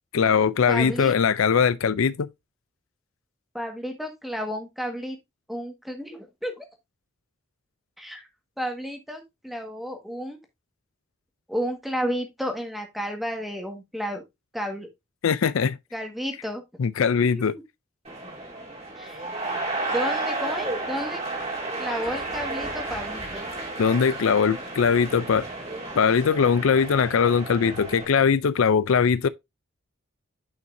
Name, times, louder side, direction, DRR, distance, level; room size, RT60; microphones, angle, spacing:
voice 1, 0.1-2.3 15.2-15.8 16.8-17.5 23.8-25.5 26.0-29.3, left 6 dB, 80° left, 0.4 m, -21 dB
voice 2, 0.7-1.1 3.5-5.2 5.5-6.7 8.0-8.2 8.6-10.4 11.5-14.2 14.5-14.9 15.9-16.6 17.2-17.6 19.0-19.3 19.9-21.2 21.8-23.4, equal, ahead, 1.6 m, -32 dB
sound 1, 18.0-28.0, right 2 dB, 30° right, 2.6 m, -32 dB
9.2 x 5.8 x 2.6 m
head